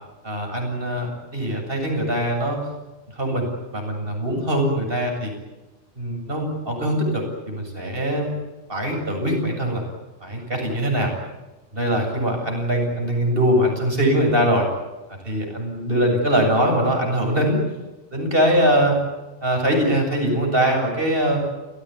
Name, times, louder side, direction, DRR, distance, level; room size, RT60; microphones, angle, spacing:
voice 1, 0.2-2.6 3.1-5.3 6.0-8.3 8.7-9.8 10.2-11.1 11.7-14.7 15.1-17.6 18.1-19.0 19.4-21.4, equal, 55° right, 2 dB, 8.1 m, -22 dB
29.5 x 17.0 x 9.8 m, 1.1 s
omnidirectional pair, 1.2 m